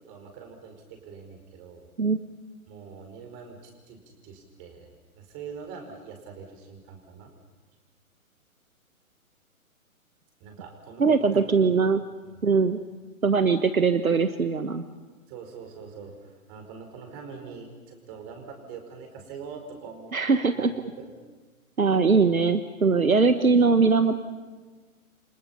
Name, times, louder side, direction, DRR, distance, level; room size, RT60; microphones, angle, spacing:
voice 1, 0.1-1.9 2.7-4.9 5.2-7.3 10.4-11.7 15.3-20.1 20.5-21.1, right 5 dB, 25° right, 4 dB, 4.8 m, -43 dB
voice 2, 11.0-12.0 12.4-12.8 13.2-14.8 20.1-20.7 21.8-24.2, right 4 dB, 75° right, 10 dB, 1.4 m, -21 dB
28.5 x 25.5 x 5.7 m, 1.3 s
figure-of-eight pair, 125°, 42 cm